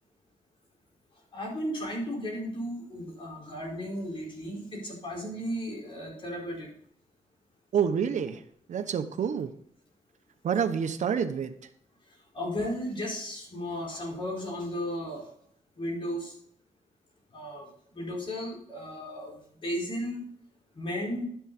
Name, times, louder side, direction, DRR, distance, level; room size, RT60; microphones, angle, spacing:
voice 1, 1.3-6.7 12.3-15.3 15.8-16.3 17.3-17.7 17.9-19.3 19.6-20.2 20.7-21.2, equal, 45° left, -2 dB, 4.9 m, -34 dB
voice 2, 7.7-8.4 8.7-9.5 10.4-11.5, right 7 dB, 75° right, 9 dB, 0.9 m, -27 dB
11.5 x 7.1 x 4.1 m, 0.66 s
wide cardioid pair, 120°, 13 cm